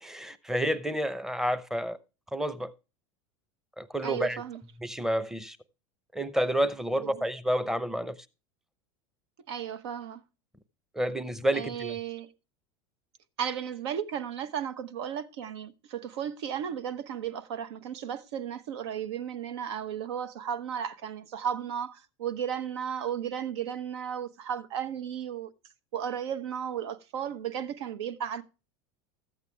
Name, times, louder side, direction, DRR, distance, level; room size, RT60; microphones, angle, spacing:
voice 1, 0.0-2.0 2.3-2.7 3.8-4.4 4.8-5.6 6.1-8.2 10.9-12.0, equal, 5° right, 0.7 m, -29 dB
voice 2, 4.0-4.6 7.0-7.3 9.5-10.2 11.5-12.3 13.4-25.5 25.9-28.4, right 9 dB, 80° right, 0.9 m, -34 dB
13.5 x 8.3 x 3.3 m
supercardioid pair, 105°, 14 cm